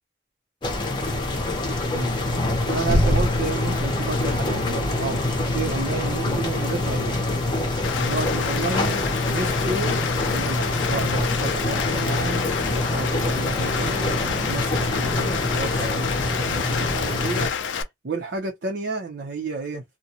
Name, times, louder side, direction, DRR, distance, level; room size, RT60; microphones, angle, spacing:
sound 1, 0.6-17.5, left 2 dB, 25° left, 0.7 m, -25 dB
voice 1, 2.7-7.2 8.0-19.8, right 3 dB, 60° right, 0.6 m, -31 dB
Rain, 7.8-17.8, left 7 dB, 80° left, 0.4 m, -29 dB
2.5 x 2.2 x 2.8 m
head